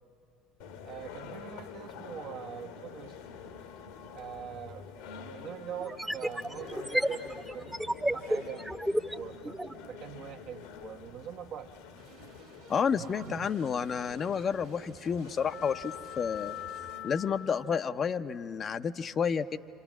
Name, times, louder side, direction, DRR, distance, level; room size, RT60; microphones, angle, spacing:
sound 1, 0.6-17.7, left 8 dB, 70° left, 1.2 m, -46 dB
voice 1, 0.8-3.2 4.1-4.8 5.1-8.6 9.1-9.6 9.9-11.7 12.9-13.5, right 8 dB, 55° right, 5 dB, 1.1 m, -43 dB
sound 2, 4.4-4.5 5.8-9.8, right 1 dB, 10° right, 0.9 m, -32 dB
sound 3, 12.0-17.0, right 4 dB, 75° right, 1.7 m, -55 dB
voice 2, 12.7-16.5 17.0-19.6, left 6 dB, 40° left, 11 dB, 0.6 m, -30 dB
28.5 x 26.5 x 6.1 m, 2.5 s
figure-of-eight pair, 60°, 0 cm